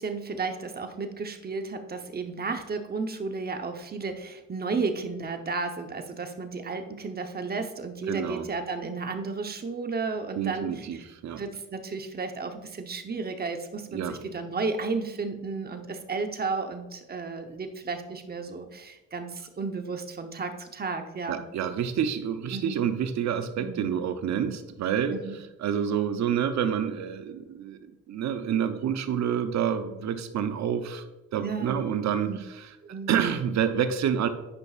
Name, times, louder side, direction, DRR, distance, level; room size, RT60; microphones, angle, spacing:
voice 1, 0.0-11.0 11.4-21.4 22.5-22.8 23.6-23.9 25.1-25.3 31.4-31.8 32.2-32.4 32.8-33.1, right 4 dB, 30° right, 6 dB, 0.9 m, -33 dB
voice 2, 8.1-8.5 10.4-11.4 13.9-14.2 21.3-31.1 31.3-34.3, right 8 dB, 65° right, 9 dB, 0.7 m, -28 dB
9.6 x 5.4 x 2.4 m, 1.0 s
cardioid pair, 90°, 30 cm